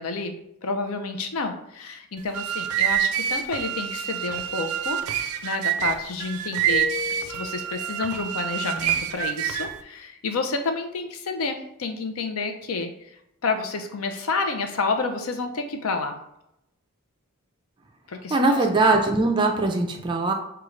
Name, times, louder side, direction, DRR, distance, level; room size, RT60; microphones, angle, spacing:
voice 1, 0.0-12.9 13.4-16.2 18.1-18.6, left 4 dB, 75° left, 6 dB, 0.5 m, -30 dB
sound 1, 2.2-9.8, right 10 dB, 90° right, 0.4 m, -27 dB
sound 2, 6.7-7.9, left 11 dB, 55° left, 0.9 m, -34 dB
voice 2, 18.3-20.3, right 2 dB, 20° right, 3 dB, 0.4 m, -21 dB
4.9 x 2.3 x 3.1 m, 0.81 s
head